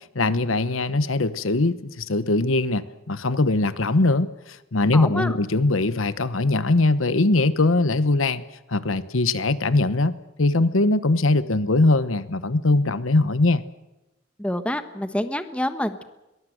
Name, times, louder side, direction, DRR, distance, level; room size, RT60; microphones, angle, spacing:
voice 1, 0.1-8.4 8.7-13.6, left 2 dB, 80° left, 14 dB, 1.1 m, -21 dB
voice 2, 4.9-5.3 14.4-16.0, left 1 dB, 5° left, 9 dB, 1.3 m, -27 dB
22.5 x 20.5 x 8.0 m, 0.98 s
head